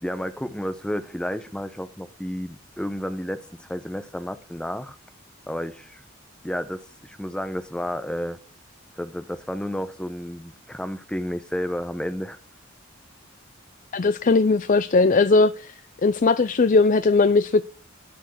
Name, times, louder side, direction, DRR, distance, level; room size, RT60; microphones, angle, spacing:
voice 1, 0.0-5.0 5.5-6.0 6.4-8.4 9.0-12.4, equal, 5° left, 0.9 m, -31 dB
voice 2, 13.9-15.7 16.0-17.7, left 3 dB, 40° left, 0.5 m, -19 dB
12.0 x 6.5 x 6.3 m
head